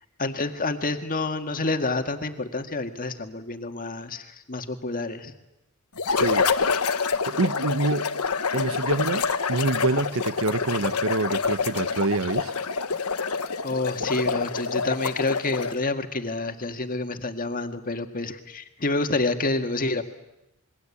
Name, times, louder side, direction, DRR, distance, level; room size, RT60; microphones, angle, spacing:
voice 1, 0.2-5.3 13.6-20.0, left 2 dB, 40° left, 7 dB, 1.8 m, -28 dB
sound 1, 6.0-15.9, left 5 dB, 85° left, 1.4 m, -27 dB
voice 2, 6.2-6.5 7.2-8.1 8.5-9.2 9.5-12.5, right 3 dB, 65° right, 15 dB, 1.0 m, -26 dB
26.5 x 22.5 x 8.5 m, 0.89 s
head